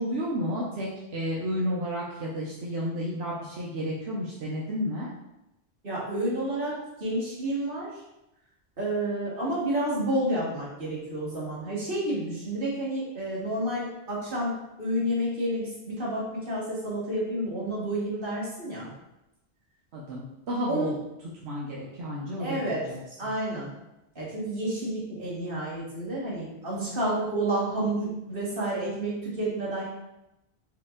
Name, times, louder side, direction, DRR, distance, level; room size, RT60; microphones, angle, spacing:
voice 1, 0.0-5.1 19.9-21.0 21.4-23.0, equal, 85° right, -5 dB, 1.1 m, -31 dB
voice 2, 5.8-7.9 8.8-18.9 20.7-21.0 22.4-22.9 23.2-23.7 24.1-29.9, right 1 dB, 60° right, -7 dB, 1.8 m, -30 dB
4.6 x 3.1 x 3.6 m, 0.90 s
omnidirectional pair, 1.1 m